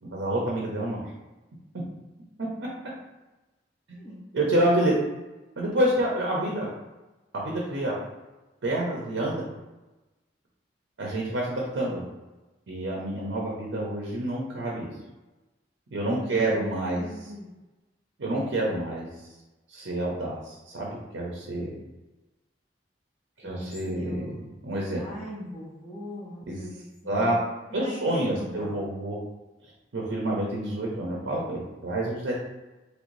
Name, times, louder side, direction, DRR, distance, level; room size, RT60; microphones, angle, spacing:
voice 1, 0.0-1.0 2.4-2.5 3.9-4.0 4.3-4.9 5.6-6.7 7.3-8.0 8.6-9.4 11.0-12.0 12.7-14.9 15.9-17.0 18.2-19.1 19.7-21.7 23.4-24.4 24.6-25.0 26.5-26.7 27.1-27.4 27.7-29.2 29.9-32.3, right 1 dB, 85° right, -3 dB, 0.6 m, -28 dB
voice 2, 16.0-16.6 16.9-17.5 23.6-24.6 25.0-27.3 27.7-28.8, equal, 20° left, -10 dB, 0.8 m, -41 dB
3.1 x 3.1 x 2.6 m, 1.1 s
head